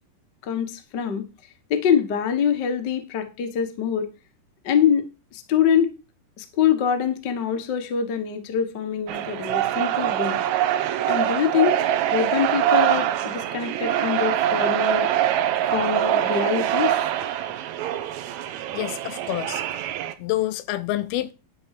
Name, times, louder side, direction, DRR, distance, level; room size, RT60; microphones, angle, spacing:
voice 1, 0.4-1.2 1.7-4.1 4.6-5.9 6.4-10.4 11.1-11.8 12.1-15.1 15.7-17.0, left 8 dB, 75° left, 1.0 m, -24 dB
sound 1, 9.1-20.1, right 11 dB, 80° right, 1.6 m, -24 dB
voice 2, 18.7-19.6 20.2-21.3, left 15 dB, 90° left, 2.6 m, -27 dB
11.5 x 4.2 x 6.5 m
omnidirectional pair, 4.3 m